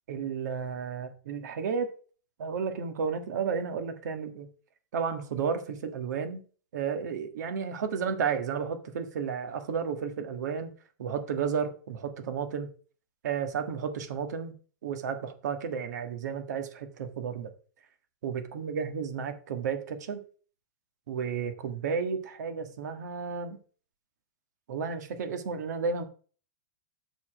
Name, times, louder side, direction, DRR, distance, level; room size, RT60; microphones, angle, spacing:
voice 1, 0.1-1.9 2.4-4.5 4.9-6.4 6.7-10.7 11.0-12.7 13.2-14.5 14.8-17.5 18.2-20.2 21.1-23.6 24.7-26.0, right 6 dB, 60° right, 1.6 m, -32 dB
6.8 x 5.1 x 6.3 m
supercardioid pair, 175°, 10 cm